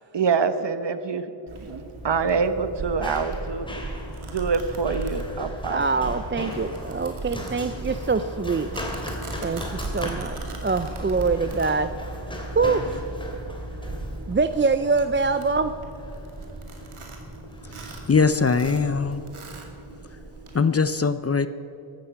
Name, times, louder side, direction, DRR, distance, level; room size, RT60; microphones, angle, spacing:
voice 1, 0.1-1.2 1.6-3.7 4.3-5.8 6.1-6.2, right 5 dB, 60° right, 11 dB, 1.0 m, -25 dB
Domestic sounds home sounds, 1.5-20.6, right 2 dB, 85° right, 2.4 m, -37 dB
Run, 2.0-19.3, left 1 dB, 10° left, 2.8 m, -39 dB
voice 2, 5.7-8.7 9.4-11.9 12.5-13.0 14.3-15.7, right 4 dB, 25° right, 11 dB, 0.5 m, -24 dB
voice 3, 17.8-19.2 20.5-21.5, left 5 dB, 30° left, 13 dB, 0.5 m, -22 dB
15.0 x 13.0 x 5.8 m, 2.9 s
wide cardioid pair, 95°, 48 cm